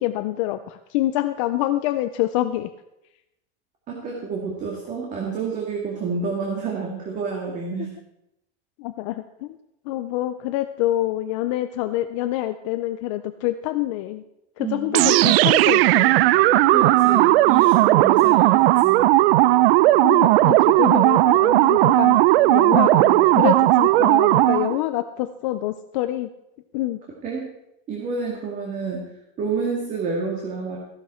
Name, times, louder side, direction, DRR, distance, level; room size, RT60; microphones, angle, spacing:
voice 1, 0.0-2.7 8.8-9.6 9.9-14.2 14.6-16.2 20.0-22.2 22.5-26.3 26.7-27.0, left 14 dB, 30° left, 10 dB, 0.4 m, -26 dB
voice 2, 3.9-7.9 14.6-15.0 16.7-19.0 27.2-27.5 27.9-29.1 29.4-30.8, right 5 dB, 25° right, -1 dB, 2.0 m, -29 dB
sound 1, 14.9-24.8, right 16 dB, 65° right, 0.5 m, -16 dB
15.0 x 11.5 x 4.3 m, 0.87 s
supercardioid pair, 180°, 32 cm